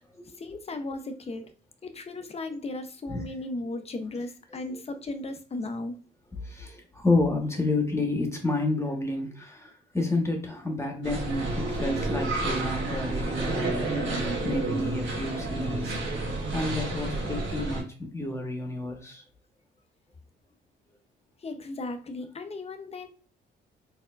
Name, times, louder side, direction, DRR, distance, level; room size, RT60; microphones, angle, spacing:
voice 1, 0.4-1.4 1.8-6.0 21.4-23.1, left 2 dB, 30° left, 7 dB, 0.7 m, -36 dB
voice 2, 6.5-9.7 9.9-13.9 14.4-16.0 16.5-19.2, left 2 dB, 15° left, 3 dB, 1.2 m, -29 dB
sound 1, 11.0-17.8, right 2 dB, 75° right, 1.4 m, -30 dB
4.4 x 3.5 x 2.5 m, 0.39 s
cardioid pair, 90°, 20 cm